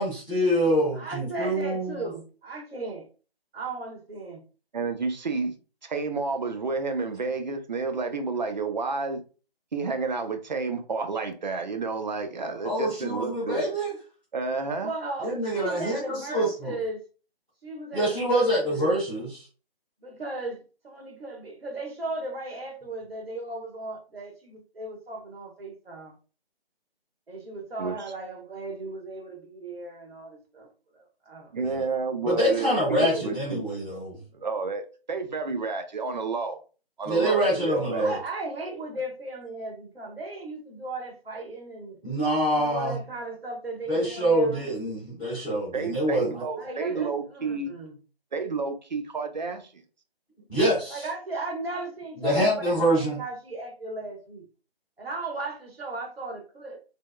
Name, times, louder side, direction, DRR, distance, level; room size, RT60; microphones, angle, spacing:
voice 1, 0.0-2.0 12.6-13.9 15.2-16.7 17.9-19.4 31.6-31.8 32.2-34.2 37.0-38.1 42.0-43.0 43.9-46.4 50.5-51.0 52.2-53.2, right 1 dB, ahead, 0.5 m, -25 dB
voice 2, 0.9-3.1 3.5-4.4 14.8-17.0 17.6-18.9 20.0-20.6 20.8-26.1 27.3-30.7 30.9-31.5 37.9-42.0 42.5-44.7 46.5-47.9 50.9-54.4 55.0-56.8, right 2 dB, 75° right, 1.3 m, -36 dB
voice 3, 4.7-5.5 5.8-9.2 9.7-13.7 14.3-14.9 27.8-28.0 31.5-33.6 34.3-34.8 35.1-36.6 37.0-38.1 45.7-47.7 48.3-49.7, right 4 dB, 50° right, 0.5 m, -30 dB
3.3 x 2.1 x 2.2 m
figure-of-eight pair, 150°, 31 cm